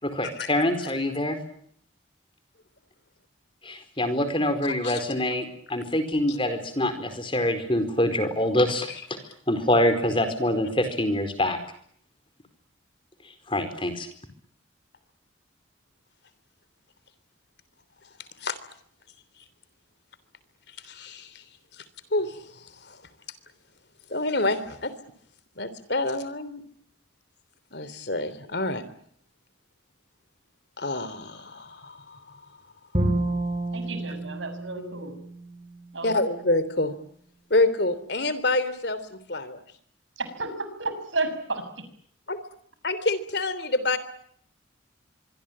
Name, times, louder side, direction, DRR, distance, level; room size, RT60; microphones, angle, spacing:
voice 1, 0.0-1.4 3.7-8.9 9.5-11.6 13.5-14.1, left 1 dB, 25° left, 9 dB, 4.5 m, -25 dB
voice 2, 20.9-21.3 22.1-23.0 24.1-24.9 25.6-26.6 27.7-28.8 30.8-32.4 34.1-34.2 36.0-36.9 37.5-39.6 42.3-42.4 42.8-44.0, left 2 dB, 55° left, 14 dB, 3.3 m, -27 dB
Bowed string instrument, 32.9-36.1, right 1 dB, 30° right, 6.5 m, -29 dB
voice 3, 33.7-35.1 35.9-36.1 40.2-40.5 40.8-41.6, right 3 dB, 75° right, 10 dB, 6.6 m, -31 dB
25.0 x 23.5 x 8.8 m, 0.64 s
head